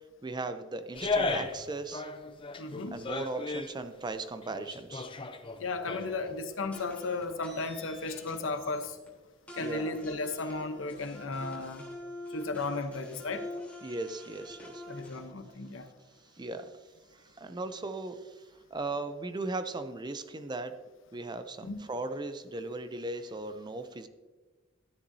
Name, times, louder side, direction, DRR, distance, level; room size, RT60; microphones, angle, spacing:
voice 1, 0.2-2.0 2.9-5.1 9.6-9.9 13.8-14.8 16.4-16.7 17.4-18.3 18.7-20.8 21.1-24.1, right 2 dB, 20° right, 10 dB, 0.5 m, -37 dB
sound 1, 0.9-1.7 1.9-3.7 4.3-6.3 6.6-6.7, left 3 dB, 25° left, 0.6 m, -35 dB
voice 2, 2.6-3.0 5.6-9.0 9.6-11.9 12.3-13.4 14.9-15.9 21.6-21.8, left 3 dB, 85° left, 8 dB, 0.9 m, -35 dB
sound 2, 6.7-9.1 9.5-15.2, left 1 dB, 5° left, 3.4 m, -46 dB
13.0 x 9.7 x 2.7 m, 1.3 s
head